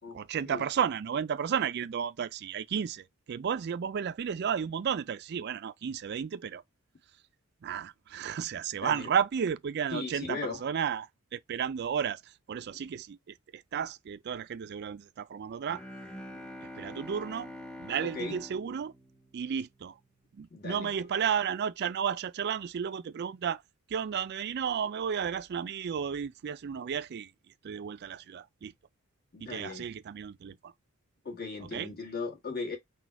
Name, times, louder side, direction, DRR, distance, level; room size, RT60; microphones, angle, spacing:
voice 1, 0.1-6.6 7.6-15.8 16.6-17.5 17.8-18.9 19.3-20.0 20.3-23.6 23.9-27.3 27.6-28.7 29.4-30.7 31.6-31.9, right 7 dB, 50° right, 0.3 m, -33 dB
voice 2, 9.9-10.6 16.3-16.5 18.0-18.4 20.5-20.9 29.3-29.8 31.2-32.8, left 4 dB, 45° left, 1.7 m, -38 dB
Bowed string instrument, 15.7-20.0, left 1 dB, 5° left, 0.8 m, -45 dB
4.1 x 2.3 x 4.5 m
head